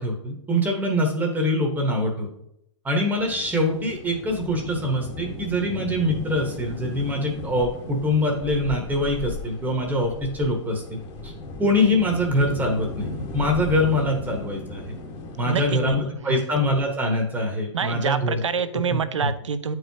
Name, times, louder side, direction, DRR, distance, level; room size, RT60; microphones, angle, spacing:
voice 1, 0.0-2.3 2.8-11.3 11.6-14.9 15.4-18.4 18.9-19.3, left 1 dB, 10° right, 1 dB, 1.2 m, -24 dB
sound 1, 3.2-16.0, left 2 dB, 30° left, 1.3 m, -36 dB
voice 2, 15.4-16.0 16.2-16.4 17.7-19.8, right 6 dB, 85° right, 12 dB, 0.7 m, -26 dB
9.7 x 4.7 x 2.8 m, 0.76 s
hypercardioid pair, 125°, 15 cm